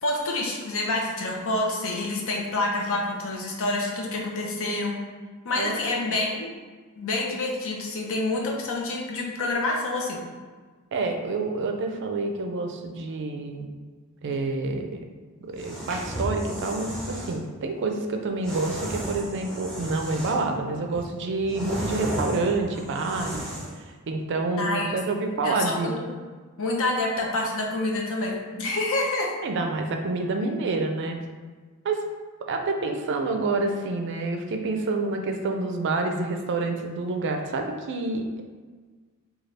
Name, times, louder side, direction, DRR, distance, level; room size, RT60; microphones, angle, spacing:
voice 1, 0.0-5.0 5.4-6.5 7.0-10.2 24.6-24.9 25.4-26.1 26.6-29.3, left 2 dB, 65° left, -1 dB, 0.7 m, -27 dB
voice 2, 5.6-6.2 10.9-13.7 14.2-15.1 15.4-23.5 23.8-25.9 29.4-31.2 31.8-32.0 32.4-38.5, right 3 dB, 55° right, 4 dB, 0.4 m, -28 dB
sound 1, 15.5-17.4 18.4-20.5 20.9-23.8, right 1 dB, 5° left, 0.7 m, -34 dB
4.0 x 2.3 x 3.2 m, 1.4 s
head